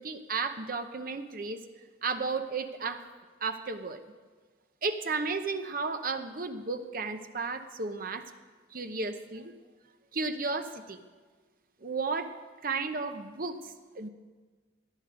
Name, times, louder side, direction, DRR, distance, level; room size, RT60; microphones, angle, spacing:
voice 1, 0.0-1.6 2.0-3.0 3.4-4.0 4.8-8.2 8.7-9.5 10.1-11.0 11.8-12.3 12.6-14.1, right 4 dB, 45° right, 8 dB, 0.8 m, -33 dB
18.0 x 10.5 x 5.1 m, 1.4 s
head